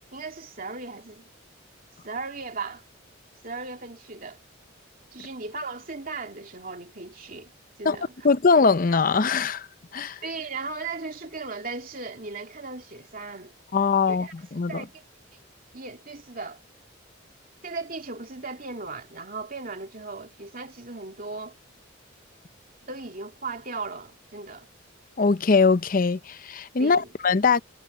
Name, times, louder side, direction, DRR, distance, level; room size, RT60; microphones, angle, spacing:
voice 1, 0.1-1.3 2.0-2.8 3.4-4.4 5.1-7.5 7.8-8.1 10.2-13.5 14.1-14.3 14.7-15.0 15.3-15.4 15.7-16.6 17.6-21.5 22.8-24.7 26.8-27.1, right 3 dB, 45° right, 3.0 m, -37 dB
voice 2, 8.2-9.7 9.9-10.2 13.7-14.8 25.2-27.6, left 4 dB, 40° left, 0.6 m, -21 dB
head